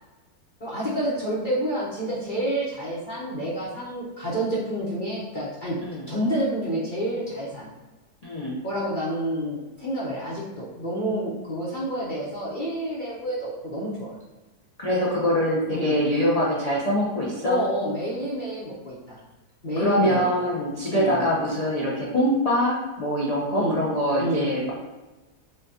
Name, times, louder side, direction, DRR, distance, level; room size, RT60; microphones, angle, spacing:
voice 1, 0.6-5.8 6.1-7.7 8.6-14.1 15.7-16.0 17.4-19.2 19.6-20.3 20.9-21.2 23.5-23.8 24.2-24.4, equal, 40° left, -7 dB, 0.7 m, -28 dB
voice 2, 8.2-8.6 14.8-17.6 19.8-24.7, equal, 75° left, -6 dB, 0.3 m, -24 dB
6.8 x 2.3 x 2.7 m, 1.1 s
omnidirectional pair, 1.7 m